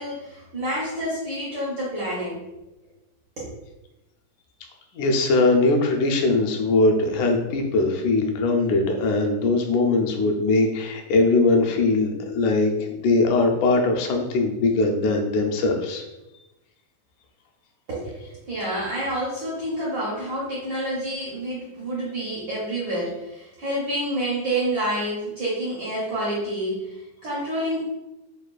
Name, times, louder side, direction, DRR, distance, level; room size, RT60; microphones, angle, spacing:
voice 1, 0.0-2.4 3.4-3.5 17.9-27.8, right 1 dB, 75° right, -7 dB, 1.0 m, -28 dB
voice 2, 4.9-16.0, left 3 dB, 80° left, 2 dB, 2.0 m, -21 dB
6.5 x 2.3 x 2.3 m, 0.97 s
omnidirectional pair, 3.4 m